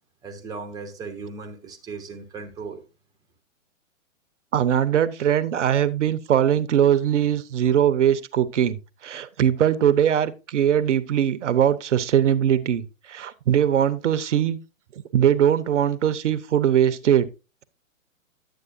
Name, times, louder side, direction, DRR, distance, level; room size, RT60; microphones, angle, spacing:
voice 1, 0.2-2.8, right 4 dB, 10° right, 0.9 m, -37 dB
voice 2, 4.5-14.6 15.1-17.3, right 10 dB, 60° right, 0.8 m, -21 dB
10.0 x 7.9 x 2.6 m
figure-of-eight pair, 120°, 40 cm